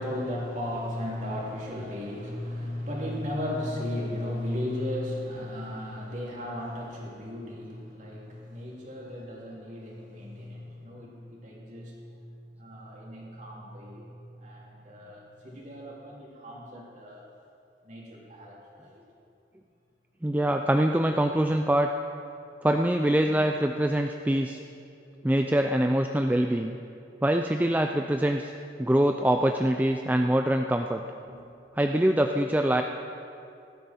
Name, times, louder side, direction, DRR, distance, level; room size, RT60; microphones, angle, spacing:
voice 1, 0.0-17.2 17.8-19.0 31.3-31.4, left 1 dB, 40° right, -3 dB, 3.0 m, -36 dB
voice 2, 20.2-21.9 22.6-24.6 25.2-26.8 27.2-28.5 28.8-31.0 31.7-32.8, right 1 dB, 10° right, 4 dB, 0.3 m, -24 dB
18.0 x 12.5 x 4.4 m, 2.6 s
head